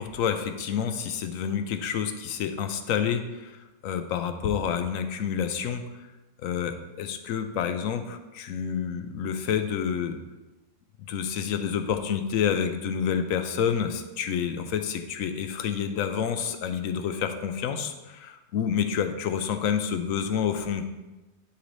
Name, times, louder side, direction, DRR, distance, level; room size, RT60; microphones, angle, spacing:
voice 1, 0.0-6.1 6.4-10.2 11.0-20.8, left 7 dB, 85° left, 8 dB, 1.0 m, -28 dB
11.5 x 3.9 x 3.2 m, 1.1 s
omnidirectional pair, 1.3 m